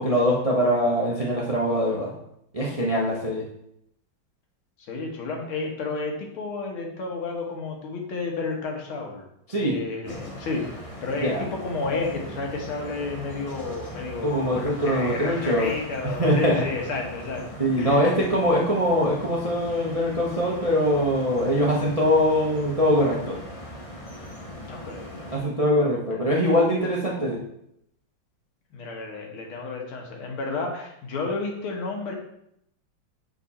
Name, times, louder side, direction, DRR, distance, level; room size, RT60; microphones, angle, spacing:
voice 1, 0.0-2.1 2.5-3.5 9.5-9.8 11.2-11.4 14.2-15.7 16.0-16.6 17.6-23.4 25.3-27.4, equal, 40° right, -3 dB, 0.5 m, -22 dB
voice 2, 4.9-9.2 9.6-17.4 17.8-18.2 24.7-25.2 26.1-26.2 28.7-32.1, left 3 dB, 90° left, 1 dB, 2.1 m, -31 dB
sound 1, 10.0-25.4, equal, 30° left, 0.6 m, -40 dB
6.7 x 4.8 x 4.2 m, 0.77 s
omnidirectional pair, 2.3 m